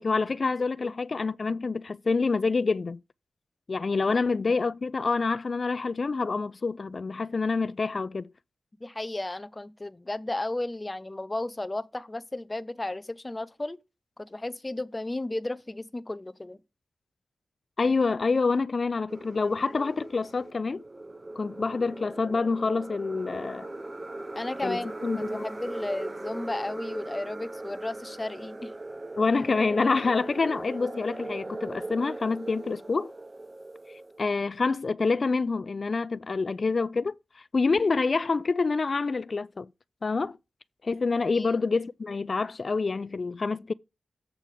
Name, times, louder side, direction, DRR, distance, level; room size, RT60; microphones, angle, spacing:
voice 1, 0.0-3.0 3.7-8.3 17.8-20.8 21.4-23.7 24.6-25.5 29.2-33.1 34.2-39.7 40.0-40.4 40.8-43.7, left 4 dB, 55° left, 0.3 m, -27 dB
voice 2, 8.8-13.8 14.2-16.6 24.3-28.7 41.3-41.5, left 2 dB, 25° left, 0.8 m, -34 dB
sound 1, 19.1-34.3, right 2 dB, 30° right, 0.9 m, -39 dB
8.3 x 3.6 x 6.5 m
cardioid pair, 40°, 0 cm